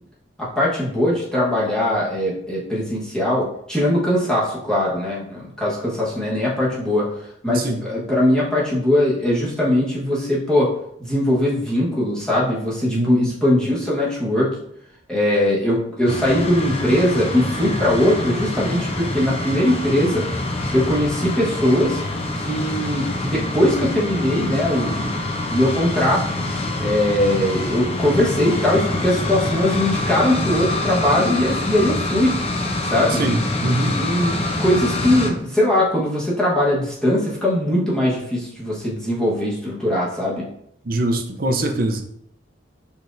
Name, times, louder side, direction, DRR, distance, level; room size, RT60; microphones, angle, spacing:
voice 1, 0.4-7.1 7.4-10.7 11.0-14.6 15.1-20.3 20.7-22.0 22.4-26.3 26.8-32.4 32.8-33.2 33.9-40.4, left 1 dB, 5° left, -6 dB, 1.2 m, -20 dB
voice 2, 7.5-7.8 12.9-13.3 33.1-34.0 40.9-42.0, right 2 dB, 50° right, 5 dB, 0.6 m, -23 dB
sound 1, 16.1-35.3, left 2 dB, 30° left, 0.6 m, -25 dB
5.8 x 3.5 x 2.6 m, 0.72 s
head